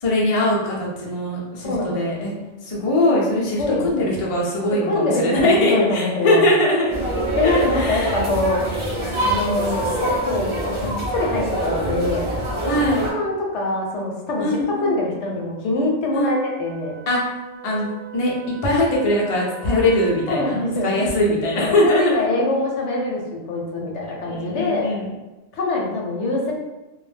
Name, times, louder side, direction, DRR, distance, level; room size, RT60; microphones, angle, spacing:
voice 1, 0.0-2.3 2.6-6.9 7.5-8.2 12.7-13.0 14.4-14.9 16.1-16.3 17.1-17.2 17.6-17.9 18.1-18.3 18.6-20.5 20.8-22.2 24.2-25.0, left 1 dB, 55° left, -4 dB, 0.4 m, -21 dB
voice 2, 1.6-2.3 3.6-4.1 4.7-6.4 7.4-8.8 9.2-12.3 13.0-14.5 14.8-16.9 20.3-21.0 21.5-25.0 25.5-26.5, left 2 dB, 70° left, -1 dB, 0.8 m, -24 dB
sound 1, 6.9-13.1, right 1 dB, 50° right, 0.3 m, -25 dB
Wind instrument woodwind instrument, 16.1-20.7, right 7 dB, 90° right, 1.0 m, -42 dB
2.2 x 2.1 x 3.2 m, 1.1 s
omnidirectional pair, 1.4 m